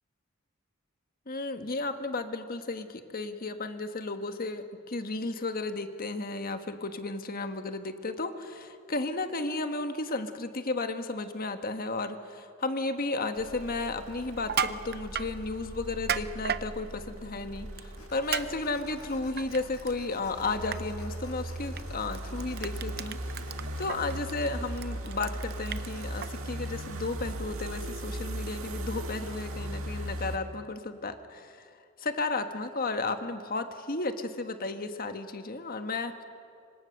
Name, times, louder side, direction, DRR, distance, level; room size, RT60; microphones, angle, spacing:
voice 1, 1.3-12.2 12.6-31.7 32.0-36.2, left 3 dB, 45° left, 7 dB, 1.5 m, -33 dB
sound 1, 13.4-30.4, right 1 dB, 80° right, 1.9 m, -39 dB
Crushing, 14.4-15.3 15.9-16.6 17.8-18.0 18.3-18.5 18.8-19.9 20.3-20.4 20.7-20.8 21.7-21.8 22.1-26.3, right 7 dB, 50° right, 0.8 m, -33 dB
sound 2, 18.0-24.2, left 3 dB, 85° left, 1.7 m, -52 dB
27.5 x 25.0 x 6.6 m, 2.4 s
head